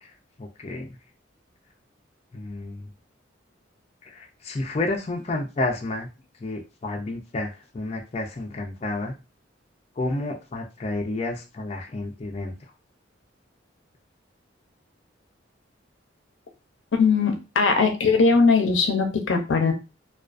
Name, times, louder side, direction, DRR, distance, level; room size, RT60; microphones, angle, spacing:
voice 1, 0.4-0.9 2.3-2.9 4.0-6.1 6.4-9.1 10.0-12.5, left 2 dB, 35° left, 1 dB, 0.4 m, -30 dB
voice 2, 17.0-19.7, left 4 dB, 85° left, 5 dB, 0.5 m, -20 dB
2.3 x 2.3 x 2.4 m, 0.29 s
head